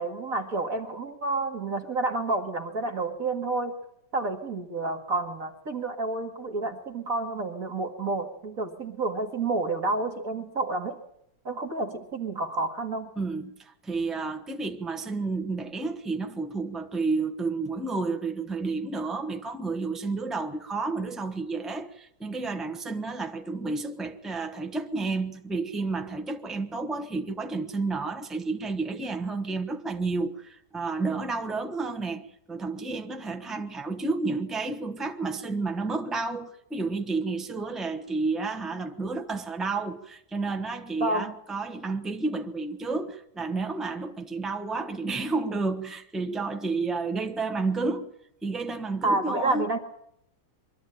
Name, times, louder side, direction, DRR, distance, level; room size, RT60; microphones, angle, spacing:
voice 1, 0.0-3.7 4.1-11.0 11.4-13.1 41.0-41.3 49.0-49.8, right 3 dB, 55° right, 2.4 m, -29 dB
voice 2, 13.2-48.1 48.4-49.7, right 3 dB, ahead, 1.0 m, -31 dB
23.0 x 13.0 x 8.9 m
omnidirectional pair, 1.8 m